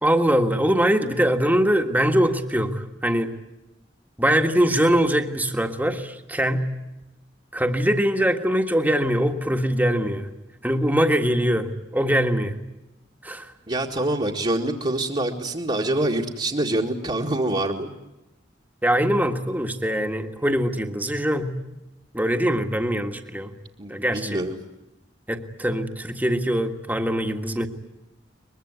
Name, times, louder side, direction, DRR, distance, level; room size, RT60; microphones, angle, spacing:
voice 1, 0.0-3.3 4.2-6.7 7.5-10.3 10.6-11.7 11.9-12.5 13.2-13.5 18.8-21.5 22.1-23.5 23.9-24.4 25.3-27.7, equal, 10° right, 5 dB, 1.7 m, -22 dB
voice 2, 13.7-17.9 23.8-24.6, right 1 dB, 35° right, -4 dB, 2.0 m, -25 dB
23.0 x 22.0 x 9.8 m, 0.97 s
head